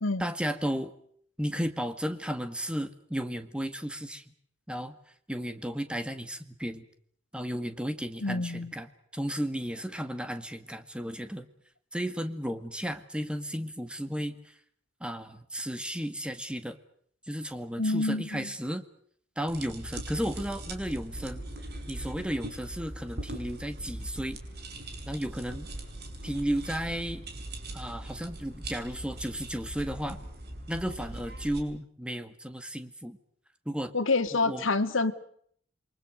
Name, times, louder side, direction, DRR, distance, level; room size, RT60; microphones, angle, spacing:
voice 1, 0.2-0.9 1.4-4.3 4.7-5.0 5.3-6.8 7.3-11.5 11.9-14.5 15.0-16.8 17.3-18.8 19.4-21.5 21.9-24.4 25.1-25.7 26.2-27.3 27.7-30.2 30.7-33.2 33.7-33.9 34.4-34.7, equal, 5° right, 9 dB, 1.9 m, -34 dB
voice 2, 8.2-8.7 17.8-18.5 33.9-35.1, left 3 dB, 85° left, 9 dB, 2.0 m, -27 dB
sound 1, 19.5-31.6, right 1 dB, 55° right, 5.1 m, -40 dB
28.5 x 23.5 x 6.5 m, 0.64 s
head